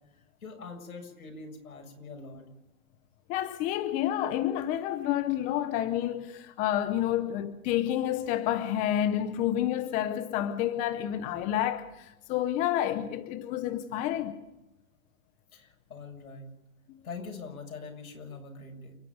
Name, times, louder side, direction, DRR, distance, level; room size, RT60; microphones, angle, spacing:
voice 1, 0.1-2.5 15.5-16.5 17.0-19.0, left 4 dB, 80° left, 7.2 m, -43 dB
voice 2, 3.3-14.4 16.9-17.0, left 11 dB, 20° left, 0.7 m, -29 dB
29.5 x 10.0 x 9.4 m
hypercardioid pair, 150°, 42 cm